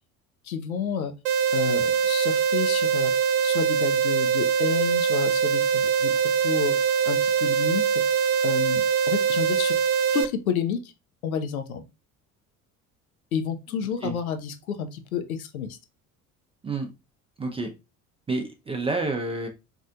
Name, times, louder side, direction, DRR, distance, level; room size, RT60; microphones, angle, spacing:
voice 1, 0.4-1.1 1.5-3.1 3.4-6.1 6.4-6.7 7.1-7.8 8.4-9.7 10.1-10.9 11.2-11.9 13.3-15.8, left 7 dB, 75° left, 0.7 m, -30 dB
sound 1, 1.2-10.2, right 7 dB, 60° right, 0.5 m, -23 dB
voice 2, 17.4-17.7 18.3-19.5, right 3 dB, 15° right, 0.5 m, -29 dB
4.1 x 2.6 x 2.4 m
figure-of-eight pair, 60°, 43 cm